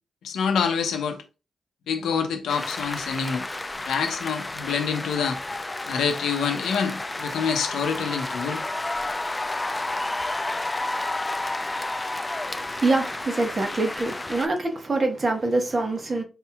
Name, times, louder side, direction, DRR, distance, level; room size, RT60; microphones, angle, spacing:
voice 1, 0.2-1.2 1.9-3.5 3.8-5.4 5.9-8.6, left 6 dB, 85° left, 0.6 m, -26 dB
sound 1, 2.5-14.5, left 2 dB, 25° left, 0.4 m, -31 dB
voice 2, 12.5-16.2, right 2 dB, 45° right, 1.1 m, -25 dB
4.2 x 2.8 x 2.2 m
supercardioid pair, 45°, 0 cm